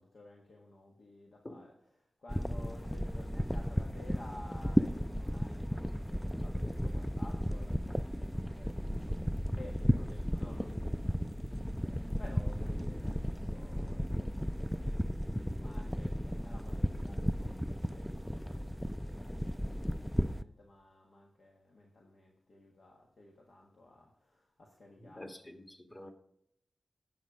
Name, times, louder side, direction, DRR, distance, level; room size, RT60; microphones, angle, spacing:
voice 1, 0.0-8.8 9.1-11.5 11.8-15.1 15.6-25.3, left 2 dB, 70° left, 1.5 m, -54 dB
sound 1, 2.3-20.4, equal, ahead, 0.4 m, -34 dB
voice 2, 25.0-26.1, left 1 dB, 30° left, 1.7 m, -48 dB
9.4 x 7.0 x 5.1 m
cardioid pair, 55°, 0 cm